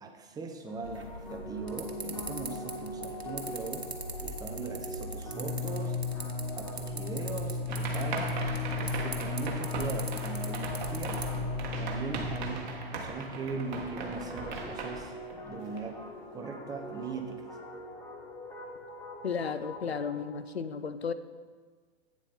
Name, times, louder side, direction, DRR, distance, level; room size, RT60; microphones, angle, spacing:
voice 1, 0.0-3.9 4.2-6.0 6.5-8.3 8.7-11.2 11.8-15.1 15.4-16.0 16.3-17.4, right 4 dB, 10° right, 3 dB, 0.8 m, -40 dB
sound 1, 0.7-20.3, left 3 dB, 10° left, 1.1 m, -38 dB
sound 2, 0.8-12.4, right 2 dB, 85° right, 1.1 m, -42 dB
sound 3, 7.7-16.1, right 3 dB, 50° right, 1.4 m, -39 dB
voice 2, 19.2-21.1, left 6 dB, 85° left, 12 dB, 0.5 m, -33 dB
8.6 x 7.2 x 4.1 m, 1.5 s
figure-of-eight pair, 105°, 31 cm